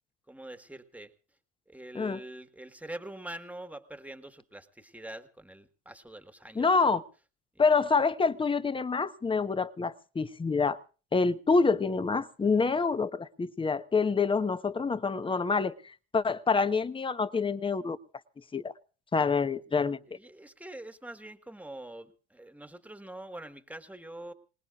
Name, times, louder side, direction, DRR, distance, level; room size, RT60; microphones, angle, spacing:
voice 1, 0.3-1.1 1.7-7.0 20.1-24.3, right 1 dB, 5° right, 1.6 m, -44 dB
voice 2, 6.6-7.0 7.6-10.8 11.1-18.0 18.5-18.7 19.1-20.0, left 4 dB, 15° left, 1.0 m, -27 dB
27.0 x 19.0 x 2.5 m
supercardioid pair, 85°, 31 cm